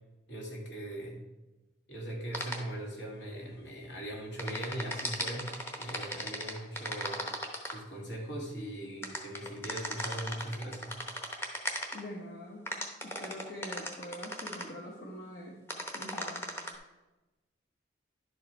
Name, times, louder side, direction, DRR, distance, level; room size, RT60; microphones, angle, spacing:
voice 1, 0.3-1.2 1.9-5.5 5.8-7.2 7.7-11.0, right 1 dB, 75° left, -2 dB, 2.3 m, -40 dB
sound 1, 2.3-2.6 4.4-7.7 9.0-12.0 12.7-14.6 15.7-16.7, equal, 10° left, 0.9 m, -36 dB
voice 2, 11.9-12.7 13.0-15.6 15.9-16.5, equal, 55° left, -3 dB, 1.2 m, -44 dB
11.0 x 4.8 x 4.5 m, 1.1 s
head